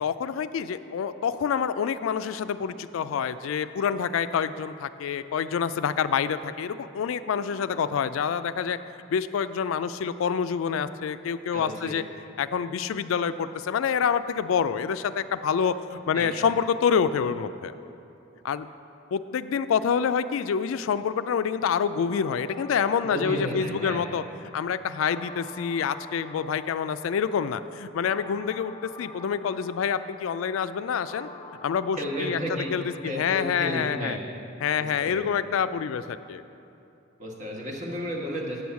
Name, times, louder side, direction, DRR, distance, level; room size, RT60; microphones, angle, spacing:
voice 1, 0.0-8.8 9.1-12.0 12.4-17.7 18.4-18.7 19.1-24.2 24.5-31.3 31.6-34.2 34.6-36.4, left 7 dB, 85° left, 13 dB, 0.3 m, -27 dB
voice 2, 11.5-11.9 16.1-16.5 23.0-24.0 32.0-32.7 33.0-34.2 34.8-35.2 37.2-38.6, equal, 35° right, -1 dB, 1.3 m, -32 dB
sound 1, 22.1-34.1, left 3 dB, 25° left, 0.5 m, -47 dB
8.6 x 6.3 x 7.0 m, 2.7 s
head